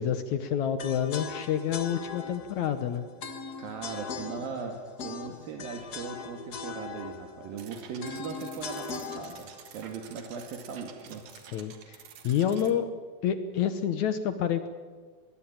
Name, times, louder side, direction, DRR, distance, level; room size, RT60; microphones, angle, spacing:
voice 1, 0.0-3.1 11.5-12.0 12.2-12.9 13.2-14.7, left 9 dB, 70° left, 10 dB, 2.0 m, -28 dB
sound 1, 0.8-10.9, left 5 dB, 90° left, 0.8 m, -41 dB
voice 2, 3.6-11.2, right 5 dB, 75° right, 3 dB, 3.6 m, -39 dB
sound 2, 7.6-12.7, right 8 dB, 60° right, 2.7 m, -50 dB
22.5 x 20.0 x 8.9 m, 1.5 s
omnidirectional pair, 4.2 m